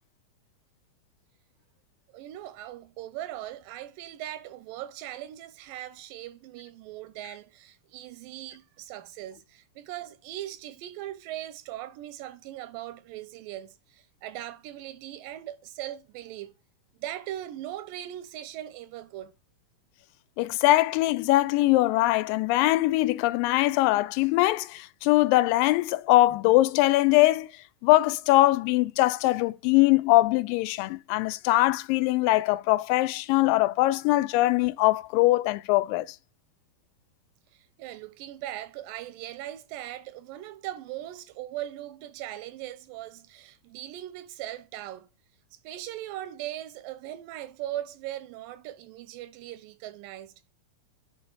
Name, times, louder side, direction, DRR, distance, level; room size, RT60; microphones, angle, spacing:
voice 1, 2.1-16.6 17.0-19.3 37.5-45.1 45.5-50.5, right 13 dB, 85° right, 2.3 m, -39 dB
voice 2, 20.4-27.5 27.8-36.1, left 18 dB, 90° left, 2.3 m, -22 dB
8.9 x 3.5 x 3.9 m
omnidirectional pair, 3.9 m